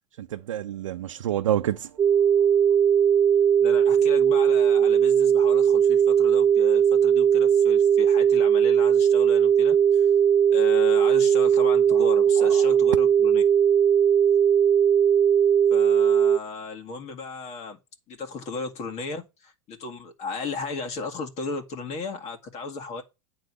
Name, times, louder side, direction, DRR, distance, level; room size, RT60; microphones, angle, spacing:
voice 1, 0.2-2.0 11.9-12.1 12.4-12.8, right 11 dB, 85° right, 0.6 m, -29 dB
sound 1, 2.0-16.4, right 8 dB, 25° right, 0.4 m, -19 dB
voice 2, 3.6-10.1 10.5-13.4 15.7-17.8 18.1-23.0, left 3 dB, 45° left, 2.2 m, -35 dB
9.5 x 3.9 x 6.2 m
hypercardioid pair, 95°, 16 cm